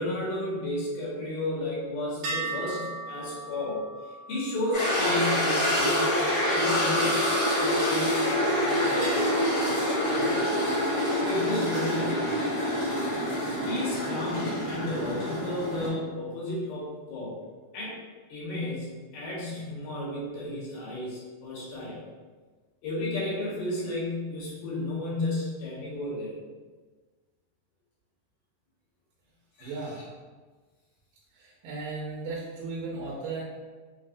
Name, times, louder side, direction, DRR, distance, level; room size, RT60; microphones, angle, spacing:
voice 1, 0.0-6.0 6.5-10.4 11.2-12.4 13.6-17.3 17.7-18.0 18.3-22.0 22.8-26.3 29.6-29.7, left 1 dB, 75° left, -6 dB, 2.6 m, -33 dB
sound 1, 2.2-5.9 7.0-8.5 9.0-10.7, right 3 dB, 60° right, 1.9 m, -39 dB
sound 2, 4.7-15.9, equal, 50° left, 1.2 m, -26 dB
voice 2, 29.6-30.0 31.3-33.4, right 3 dB, 85° right, -7 dB, 2.3 m, -36 dB
5.8 x 2.0 x 2.5 m, 1.4 s
omnidirectional pair, 3.7 m